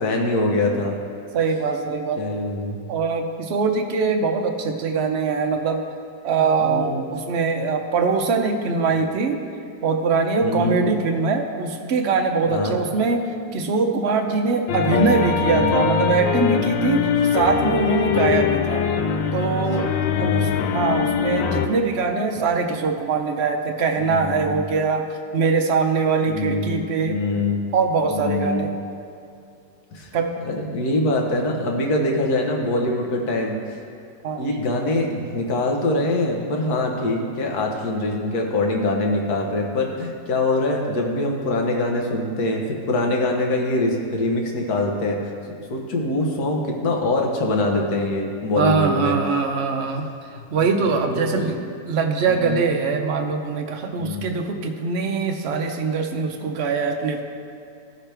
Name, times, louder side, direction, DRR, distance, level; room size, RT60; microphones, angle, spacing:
voice 1, 0.0-1.0 2.2-2.8 6.6-7.0 10.4-10.8 12.5-12.8 15.5-15.8 16.9-17.0 17.3-17.5 18.1-18.4 20.1-20.7 24.0-24.6 26.2-26.8 27.0-27.6 28.1-28.7 29.9-30.1 30.4-33.8 34.4-45.3 45.7-49.1 50.8-51.4 52.2-52.6 54.0-54.3, left 2 dB, 60° left, 1 dB, 1.6 m, -24 dB
voice 2, 1.3-2.2 2.9-5.8 6.2-9.4 9.8-13.2 13.5-18.9 19.3-19.9 20.2-25.1 25.3-27.2 27.7-28.7 30.1-30.3 34.2-34.5 48.5-50.0 50.5-51.6 51.9-57.2, right 4 dB, 55° right, 4 dB, 0.7 m, -22 dB
sound 1, 14.7-21.7, left 7 dB, 90° left, 1.3 m, -22 dB
15.0 x 5.9 x 3.4 m, 2.5 s
omnidirectional pair, 1.9 m